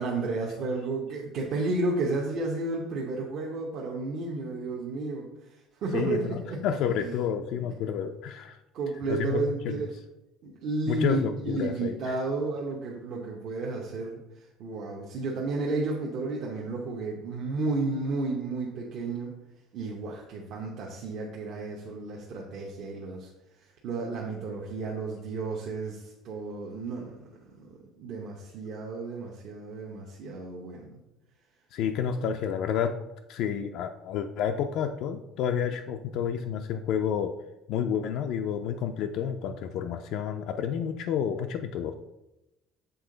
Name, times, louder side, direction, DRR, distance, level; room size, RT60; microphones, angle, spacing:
voice 1, 0.0-6.6 6.9-7.2 7.5-7.9 8.7-9.9 10.4-19.3 19.7-31.0, right 3 dB, 50° right, -2 dB, 0.8 m, -32 dB
voice 2, 5.9-8.6 9.1-9.8 10.9-12.1 31.7-33.0 33.3-37.3 37.7-41.9, left 8 dB, 60° left, 5 dB, 0.3 m, -30 dB
6.8 x 3.7 x 3.8 m, 0.93 s
cardioid pair, 155°, 0 cm